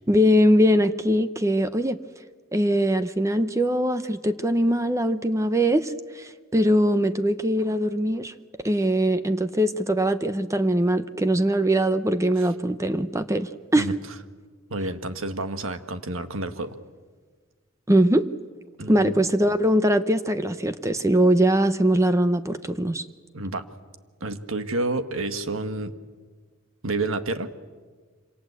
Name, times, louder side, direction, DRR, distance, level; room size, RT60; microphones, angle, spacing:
voice 1, 0.1-2.0 2.5-8.3 8.6-13.9 17.9-18.3 18.9-23.0, equal, 15° right, 11 dB, 0.7 m, -22 dB
voice 2, 14.7-16.7 18.8-19.2 23.3-23.6 24.2-25.9 26.8-27.5, right 2 dB, 75° right, 9 dB, 1.6 m, -29 dB
26.5 x 26.5 x 8.2 m, 1.5 s
head